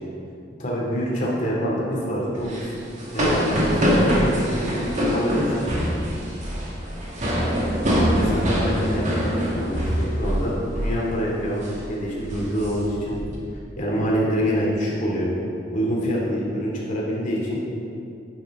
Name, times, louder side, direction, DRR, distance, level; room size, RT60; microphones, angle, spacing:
voice 1, 0.6-2.8 3.1-5.6 7.8-13.2 13.8-15.3 15.7-17.6, equal, 45° left, -5 dB, 2.8 m, -26 dB
sound 1, 2.4-10.5 10.7-11.0 11.4-11.7 12.2-13.3, equal, 40° right, 2.0 m, -23 dB
11.5 x 9.4 x 3.8 m, 2.7 s
head